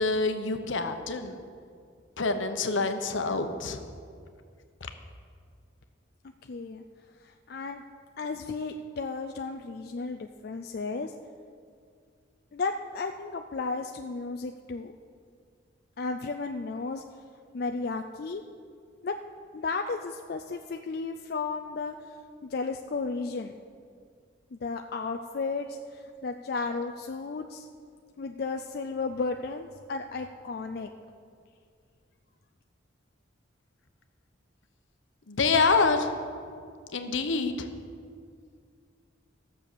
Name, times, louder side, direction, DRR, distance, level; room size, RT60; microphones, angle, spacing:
voice 1, 0.0-1.4 2.2-3.8 35.3-36.1 36.9-37.7, left 4 dB, 75° left, 7 dB, 0.9 m, -26 dB
voice 2, 6.5-6.8 7.5-7.8 8.2-11.1 12.5-14.9 16.0-17.0 17.5-18.4 19.0-19.2 19.5-21.9 22.5-23.5 24.5-27.7 28.2-30.9, left 4 dB, 50° left, 5 dB, 0.4 m, -33 dB
14.0 x 6.9 x 6.7 m, 2.2 s
head